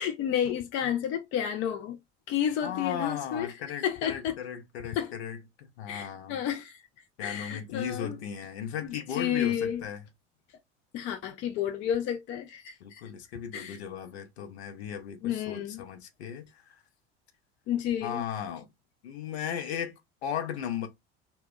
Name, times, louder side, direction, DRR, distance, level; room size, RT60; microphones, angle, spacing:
voice 1, 0.0-2.0 2.3-3.5 3.8-4.4 4.9-5.1 5.9-6.8 7.2-8.2 8.8-9.8 10.9-13.0 13.5-13.8 15.2-15.8 17.7-18.2, left 9 dB, 35° left, 0.4 m, -31 dB
voice 2, 2.6-6.4 7.2-10.0 12.8-16.8 18.0-18.7 19.0-20.9, left 8 dB, 65° left, 0.7 m, -36 dB
2.1 x 2.1 x 3.7 m
figure-of-eight pair, 70°, 35 cm